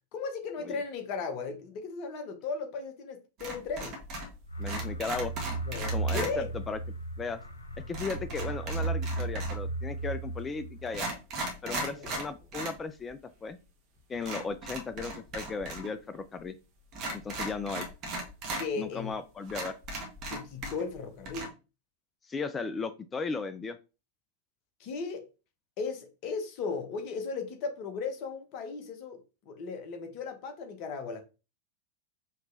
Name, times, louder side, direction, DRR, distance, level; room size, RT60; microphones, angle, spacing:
voice 1, 0.1-4.0 5.7-6.5 11.6-12.2 18.6-19.1 20.3-21.5 24.8-25.3 25.8-31.2, left 4 dB, 40° left, 0.8 m, -36 dB
sound 1, 3.4-4.4 4.6-6.3 7.9-9.7 10.4-10.5 10.9-12.8 13.1-13.2 14.2-15.9 16.1-16.2 16.9-18.7 19.1-19.2 19.5-21.0 21.2-21.5, right 2 dB, 35° right, 1.2 m, -37 dB
sound 2, 4.5-11.0, right 3 dB, 80° left, 0.5 m, -35 dB
voice 2, 4.6-5.3 5.9-6.8 7.2-7.4 7.9-11.1 11.6-13.6 14.1-16.5 17.1-17.9 18.8-19.7 22.2-23.8, left 4 dB, 20° left, 0.3 m, -36 dB
5.1 x 2.9 x 2.5 m
figure-of-eight pair, 90°, 0 cm